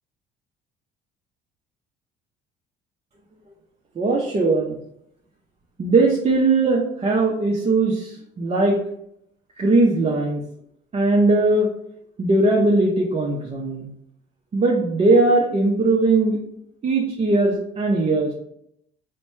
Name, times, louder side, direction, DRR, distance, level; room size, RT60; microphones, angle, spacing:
voice 1, 4.0-4.8 5.8-8.8 9.6-10.4 10.9-11.7 12.2-13.9 14.5-16.4 16.8-18.3, right 2 dB, 30° right, -2 dB, 0.6 m, -19 dB
4.2 x 2.1 x 3.1 m, 0.75 s
hypercardioid pair, 60°, 21 cm